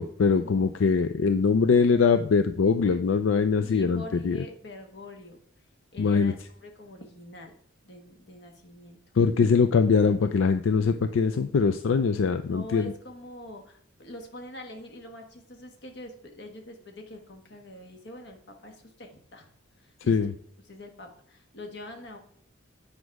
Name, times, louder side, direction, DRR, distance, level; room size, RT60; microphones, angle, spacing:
voice 1, 0.0-4.4 6.0-6.3 9.2-12.9 20.1-20.3, left 5 dB, 85° left, 9 dB, 0.4 m, -22 dB
voice 2, 3.6-5.4 5.9-7.6 7.8-9.0 12.5-19.5 19.8-20.2 20.6-22.2, left 1 dB, 60° left, 4 dB, 1.3 m, -44 dB
8.2 x 5.1 x 4.7 m, 0.64 s
head